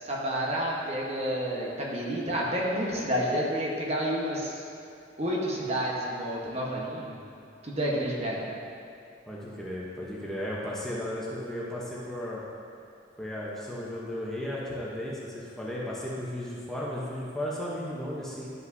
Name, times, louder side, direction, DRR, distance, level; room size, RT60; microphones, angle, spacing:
voice 1, 0.0-4.5 5.2-7.2 7.6-8.5, equal, 35° right, -4 dB, 1.1 m, -30 dB
voice 2, 9.3-12.4 13.2-18.5, left 1 dB, 5° left, -7 dB, 0.9 m, -35 dB
11.5 x 5.5 x 2.7 m, 2.5 s
head